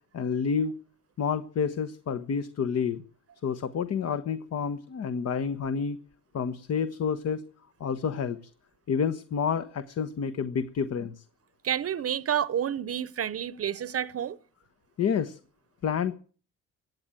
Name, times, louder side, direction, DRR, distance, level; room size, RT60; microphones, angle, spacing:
voice 1, 0.1-0.8 1.2-3.0 3.4-6.0 6.3-7.4 7.8-8.4 8.9-11.2 15.0-15.4 15.8-16.2, left 6 dB, 55° left, 1.2 m, -29 dB
voice 2, 11.6-14.4, right 9 dB, 50° right, 0.9 m, -29 dB
16.0 x 9.0 x 9.1 m
cardioid pair, 90°, 30 cm